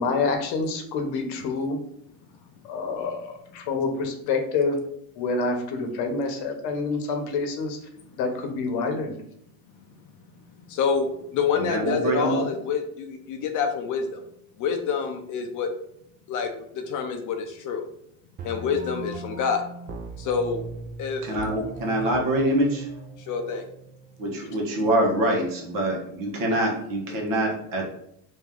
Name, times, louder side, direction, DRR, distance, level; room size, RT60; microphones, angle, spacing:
voice 1, 0.0-1.8 2.6-4.8 5.2-7.8 8.2-9.1, left 4 dB, 65° left, 4 dB, 0.9 m, -27 dB
voice 2, 10.7-14.2 14.6-15.7 16.3-17.9 18.4-19.6 20.2-20.7 21.0-21.2 23.2-23.6, left 6 dB, 45° left, 5 dB, 0.5 m, -27 dB
voice 3, 11.6-12.5 21.2-22.9 24.2-27.9, right 1 dB, 50° right, 0 dB, 1.2 m, -25 dB
sound 1, 18.4-24.4, right 3 dB, 25° right, 0.3 m, -39 dB
3.0 x 2.7 x 3.7 m, 0.73 s
cardioid pair, 130°, 42 cm